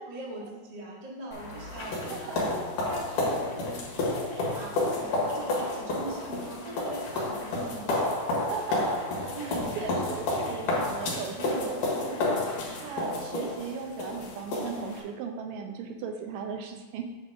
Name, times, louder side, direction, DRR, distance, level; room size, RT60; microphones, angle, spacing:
voice 1, 0.1-2.5 2.9-8.0 9.3-9.8 11.4-11.6, right 2 dB, 55° right, -4 dB, 0.4 m, -41 dB
sound 1, 1.3-15.0, left 2 dB, 70° left, 3.0 m, -31 dB
voice 2, 2.0-2.6 8.3-17.0, right 6 dB, 75° right, 4 dB, 2.3 m, -38 dB
8.2 x 4.0 x 6.1 m, 1.2 s
omnidirectional pair, 4.0 m